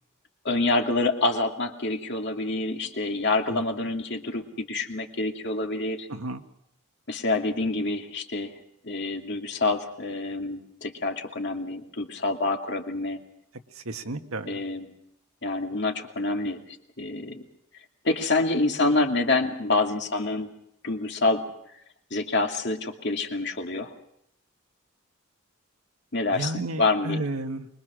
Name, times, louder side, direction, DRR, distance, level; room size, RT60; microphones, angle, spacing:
voice 1, 0.4-6.1 7.1-13.2 14.5-14.9 15.4-17.4 18.0-20.5 20.8-21.4 22.1-23.9 26.1-27.2, left 2 dB, 55° left, 3 dB, 2.5 m, -27 dB
voice 2, 6.1-6.4 13.7-14.6 26.3-27.7, right 2 dB, 80° right, 6 dB, 1.7 m, -32 dB
25.0 x 22.5 x 6.3 m, 0.76 s
head